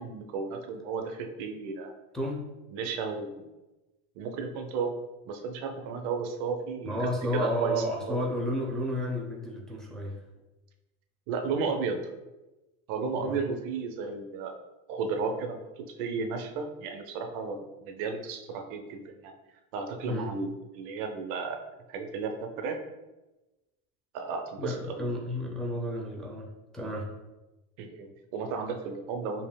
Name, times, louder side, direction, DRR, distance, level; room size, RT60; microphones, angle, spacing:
voice 1, 0.0-1.9 2.7-3.4 4.2-4.9 5.3-8.2 11.3-12.0 12.9-14.5 14.9-19.3 19.7-21.6 21.9-22.8 24.1-25.1 27.8-29.5, right 4 dB, 65° right, 5 dB, 0.6 m, -34 dB
voice 2, 6.8-10.2 13.2-13.4 20.0-20.3 24.6-27.1, equal, ahead, -3 dB, 0.6 m, -32 dB
5.4 x 2.6 x 2.2 m, 1.1 s
supercardioid pair, 125°, 32 cm